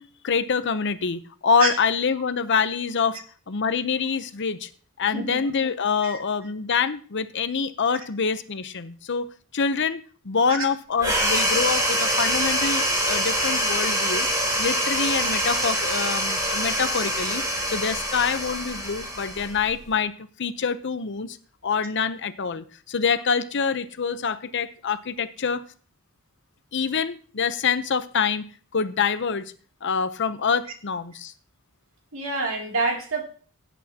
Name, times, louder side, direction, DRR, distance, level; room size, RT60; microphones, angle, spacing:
voice 1, 0.0-3.2 3.5-4.7 5.0-14.3 14.6-21.4 21.6-25.6 26.7-29.5 29.8-31.3, left 5 dB, 55° left, 12 dB, 0.7 m, -26 dB
voice 2, 5.1-5.4 6.0-6.2 7.9-8.0 10.5-10.6 11.1-11.2 11.8-11.9 32.1-33.2, right 3 dB, 65° right, 1 dB, 2.7 m, -27 dB
sound 1, 11.0-19.9, equal, 15° right, 3.6 m, -25 dB
17.0 x 8.2 x 2.8 m, 0.42 s
head